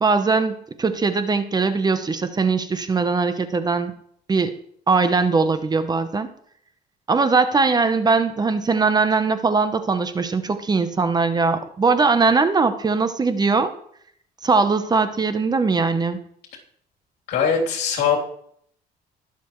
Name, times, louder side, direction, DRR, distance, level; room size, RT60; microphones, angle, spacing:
voice 1, 0.0-3.9 4.3-4.5 4.9-6.3 7.1-13.7 14.4-16.2, right 4 dB, 25° right, 10 dB, 0.8 m, -20 dB
voice 2, 17.3-18.2, left 6 dB, 75° left, -1 dB, 3.2 m, -21 dB
20.5 x 6.9 x 3.1 m, 0.65 s
cardioid pair, 110°, 17 cm